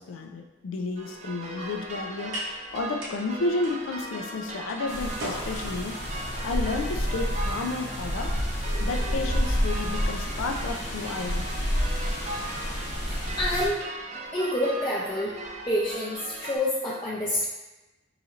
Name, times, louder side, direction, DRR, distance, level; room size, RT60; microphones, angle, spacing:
voice 1, 0.0-8.3 8.8-11.5, left 3 dB, 90° left, 3 dB, 0.4 m, -32 dB
sound 1, 0.8-9.2, equal, 90° right, 0.9 m, -43 dB
sound 2, 1.0-16.6, right 2 dB, 35° right, 0.4 m, -39 dB
sound 3, 4.9-13.7, equal, 60° left, 0.9 m, -29 dB
voice 2, 13.1-13.8 14.3-15.3 15.7-17.4, left 1 dB, 20° left, -7 dB, 0.5 m, -28 dB
4.2 x 4.0 x 2.5 m, 1.1 s
head